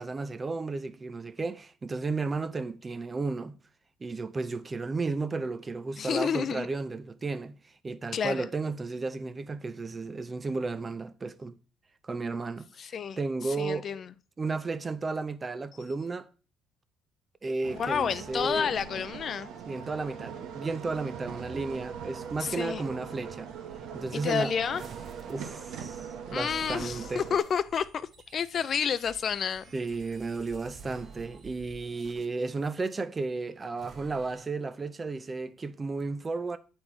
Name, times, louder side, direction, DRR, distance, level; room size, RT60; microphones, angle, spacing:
voice 1, 0.0-3.6 4.0-7.6 7.8-11.6 12.0-13.9 14.4-16.3 17.4-18.7 19.7-23.5 23.9-24.5 25.3-27.2 29.7-36.6, right 3 dB, 20° right, 0.5 m, -33 dB
voice 2, 6.0-6.7 8.1-8.5 12.8-14.1 17.7-19.5 22.4-22.8 24.1-24.9 26.3-29.6, left 7 dB, 40° left, 0.3 m, -30 dB
sound 1, 17.6-27.4, right 7 dB, 70° right, 1.1 m, -41 dB
sound 2, 24.7-33.0 33.7-34.5, right 5 dB, 40° right, 1.0 m, -51 dB
8.4 x 4.3 x 4.4 m
cardioid pair, 120°, 0 cm